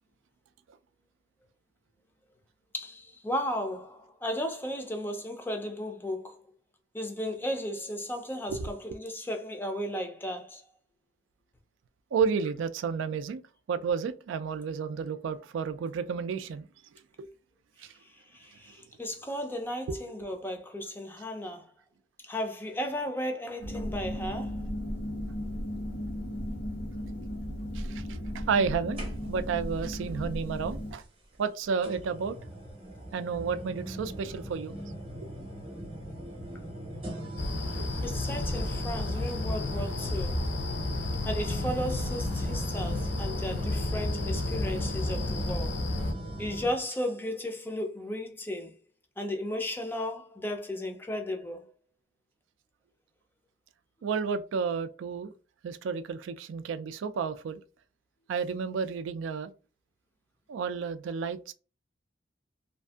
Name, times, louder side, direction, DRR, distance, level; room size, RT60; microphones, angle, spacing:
voice 1, 2.7-6.4 6.9-10.6 18.0-21.7 22.2-24.6 38.0-40.4 41.2-45.8 46.4-48.8 49.2-51.7, equal, 10° left, 0.4 m, -35 dB
voice 2, 12.1-13.4 13.7-16.7 17.2-17.3 19.9-20.0 27.7-28.0 28.3-31.0 31.4-32.4 33.1-34.7 54.0-55.3 55.6-57.6 58.3-59.5 60.5-61.5, right 6 dB, 90° right, 0.3 m, -31 dB
sound 1, 23.6-30.9, equal, 85° left, 1.1 m, -35 dB
sound 2, 29.0-29.6 30.9-31.0 31.8-46.8, right 1 dB, 30° right, 0.7 m, -40 dB
sound 3, 37.4-46.1, left 2 dB, 70° left, 0.6 m, -32 dB
2.6 x 2.5 x 2.3 m
head